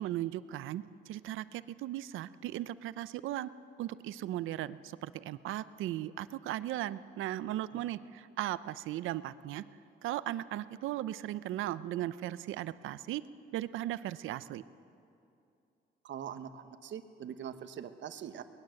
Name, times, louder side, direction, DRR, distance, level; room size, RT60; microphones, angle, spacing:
voice 1, 0.0-3.5 3.8-9.6 10.0-13.2 13.5-14.6, right 13 dB, 85° right, 15 dB, 0.7 m, -37 dB
voice 2, 16.0-18.4, right 9 dB, 70° right, 9 dB, 1.3 m, -43 dB
23.5 x 19.5 x 7.8 m, 2.6 s
cardioid pair, 90°, 20 cm